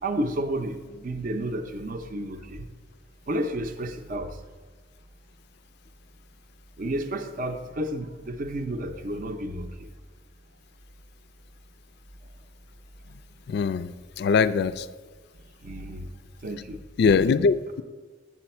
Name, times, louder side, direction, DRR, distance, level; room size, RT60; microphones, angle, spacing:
voice 1, 0.0-2.7 3.3-4.4 6.8-9.9 15.6-16.1 16.4-16.8, right 1 dB, 50° right, 6 dB, 0.6 m, -31 dB
voice 2, 13.5-13.9 14.2-14.9 17.0-17.8, left 5 dB, 60° left, 13 dB, 0.3 m, -22 dB
8.3 x 7.3 x 4.3 m, 1.4 s
head